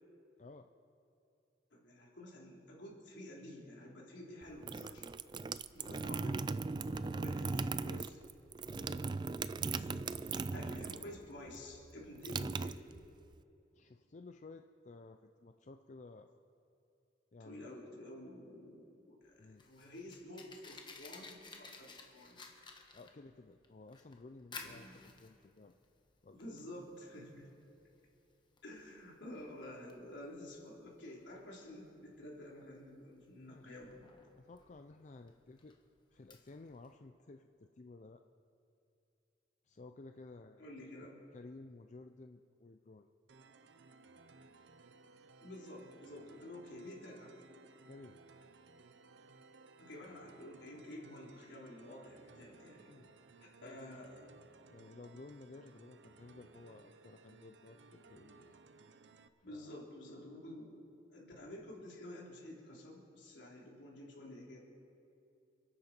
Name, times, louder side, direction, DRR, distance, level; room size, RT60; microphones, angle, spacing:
voice 1, 0.4-0.7 6.0-6.4 6.9-8.1 8.7-8.9 13.7-16.3 17.3-17.8 19.4-19.6 22.9-25.7 26.2-26.4 33.4-33.7 34.3-35.8 36.1-38.2 39.7-40.6 41.3-43.1 47.9-48.2 52.8-53.2 53.6-53.9 54.7-58.6 59.4-59.8, left 3 dB, 40° left, 6 dB, 0.5 m, -55 dB
voice 2, 1.7-5.0 5.7-6.4 6.8-8.1 9.7-10.0 10.4-12.9 17.4-22.4 24.5-24.9 26.3-27.5 28.6-34.1 40.6-41.2 45.4-47.4 49.8-52.9 53.4-54.2 59.4-60.8 61.1-64.6, left 1 dB, 75° left, -3 dB, 3.7 m, -50 dB
sound 1, 4.4-11.2 11.5-13.3, right 4 dB, 25° right, 0.3 m, -38 dB
Fire, 19.2-36.9, left 4 dB, 25° left, 1.3 m, -56 dB
sound 2, 43.3-59.3, right 3 dB, 75° right, 0.7 m, -60 dB
28.5 x 9.8 x 4.5 m, 2.6 s
head